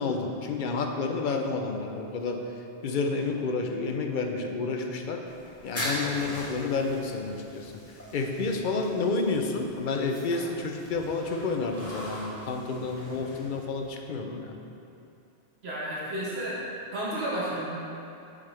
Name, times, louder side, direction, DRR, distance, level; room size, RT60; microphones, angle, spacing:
voice 1, 0.0-2.5 2.8-5.2 5.6-7.7 8.1-14.6, left 3 dB, 55° left, 4 dB, 0.7 m, -30 dB
sound 1, 5.3-13.9, equal, 15° left, 1.6 m, -40 dB
voice 2, 15.6-16.6 16.9-17.7, right 1 dB, 70° right, -7 dB, 1.3 m, -31 dB
7.2 x 6.5 x 3.3 m, 2.7 s
omnidirectional pair, 1.1 m